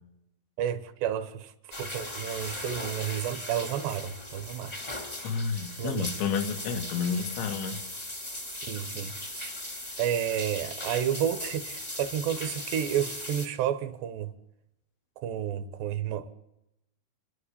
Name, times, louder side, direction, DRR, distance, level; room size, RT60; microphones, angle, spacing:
voice 1, 0.6-1.5 1.8-4.7 5.8-6.1 8.6-9.5 10.0-14.3 15.2-16.3, right 10 dB, 75° right, 3.0 m, -31 dB
sound 1, 1.7-13.5, left 1 dB, 20° left, 1.1 m, -38 dB
voice 2, 5.2-7.8, left 5 dB, 75° left, 3.7 m, -30 dB
30.0 x 11.0 x 8.5 m
omnidirectional pair, 5.2 m